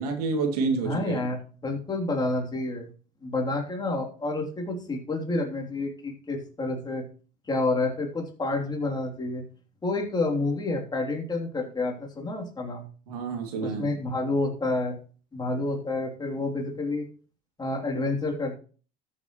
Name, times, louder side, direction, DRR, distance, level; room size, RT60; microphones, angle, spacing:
voice 1, 0.0-1.3 13.1-13.9, right 4 dB, 85° right, 3 dB, 2.6 m, -28 dB
voice 2, 0.8-2.9 3.2-7.0 7.5-9.4 9.8-12.9 13.6-15.0 15.3-17.1 17.6-18.6, left 2 dB, 20° left, 0 dB, 3.1 m, -29 dB
13.5 x 7.8 x 3.1 m, 0.40 s
hypercardioid pair, 85°, 19 cm